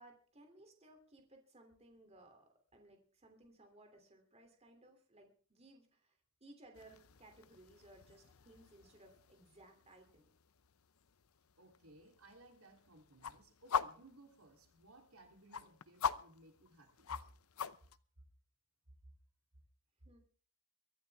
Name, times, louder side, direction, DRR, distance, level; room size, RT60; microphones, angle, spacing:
voice 1, 0.0-10.3 20.0-20.2, right 1 dB, 30° right, 4 dB, 3.0 m, -61 dB
sound 1, 6.7-18.0, left 7 dB, 85° left, 0.7 m, -45 dB
voice 2, 11.6-17.2, right 1 dB, 85° right, 3 dB, 3.3 m, -60 dB
23.5 x 11.5 x 3.5 m, 0.42 s
head